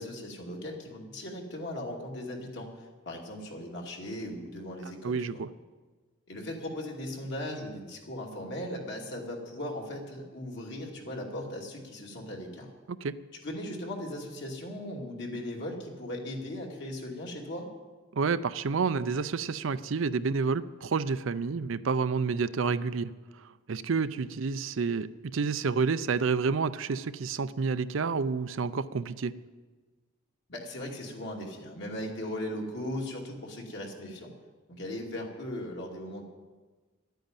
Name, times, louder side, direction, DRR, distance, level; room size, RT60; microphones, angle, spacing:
voice 1, 0.0-5.4 6.3-12.7 13.4-17.6 30.5-34.3 34.7-36.2, left 1 dB, 60° left, -1 dB, 2.6 m, -38 dB
voice 2, 5.0-5.5 13.0-13.1 18.1-23.1 23.7-29.4, right 5 dB, 70° right, 14 dB, 0.5 m, -29 dB
12.0 x 9.2 x 8.9 m, 1.3 s
head